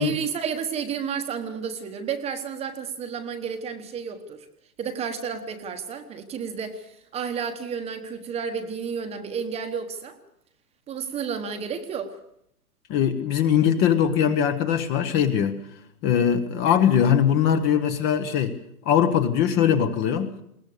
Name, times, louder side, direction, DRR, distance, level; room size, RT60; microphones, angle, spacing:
voice 1, 0.0-4.5 4.8-10.2 10.9-12.2, right 6 dB, 15° right, 8 dB, 1.2 m, -31 dB
voice 2, 12.9-15.6 16.0-18.5 18.9-20.3, left 8 dB, 20° left, 9 dB, 1.0 m, -21 dB
21.0 x 18.5 x 6.7 m, 0.75 s
hypercardioid pair, 145°, 46 cm